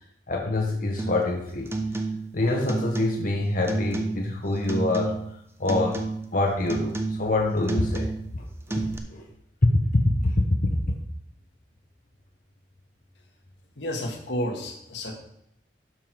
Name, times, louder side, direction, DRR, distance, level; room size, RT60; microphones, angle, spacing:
voice 1, 0.3-1.7 2.3-5.2 5.6-6.0 6.3-8.1 8.3-9.2 9.9-10.3 10.6-10.7, left 2 dB, 50° left, 0 dB, 1.1 m, -26 dB
sound 1, 1.0-1.3 1.7-2.4 2.7-3.4 3.7-4.3 4.7-5.4 5.7-6.3 6.7-7.4 7.7-8.4 8.7-9.0, right 3 dB, 15° right, 1.0 m, -30 dB
voice 2, 13.8-15.2, equal, 75° left, 2 dB, 1.8 m, -31 dB
12.5 x 5.8 x 4.6 m, 0.75 s
head